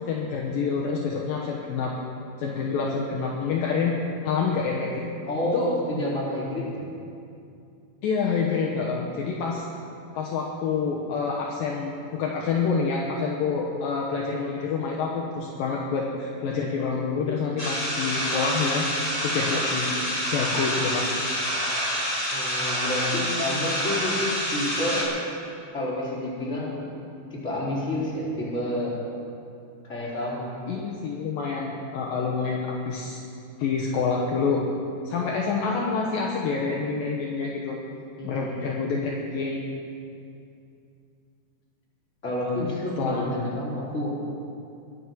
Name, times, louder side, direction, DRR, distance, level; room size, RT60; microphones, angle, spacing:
voice 1, 0.0-1.9 2.4-4.0 4.2-5.0 5.4-5.7 8.0-9.7 10.2-18.8 19.2-19.9 20.3-21.1 30.7-33.2 33.6-34.6 35.1-37.8 38.2-39.6 43.0-43.2, left 5 dB, 70° left, -2 dB, 2.6 m, -27 dB
voice 2, 5.3-6.8 22.3-24.2 24.5-25.1 25.7-26.9 27.3-28.9 29.8-30.6 38.2-38.7 42.2-44.1, left 1 dB, 20° left, -7 dB, 3.9 m, -29 dB
sound 1, 17.6-25.0, equal, 10° right, 3.0 m, -27 dB
22.0 x 8.3 x 6.2 m, 2.5 s
omnidirectional pair, 4.6 m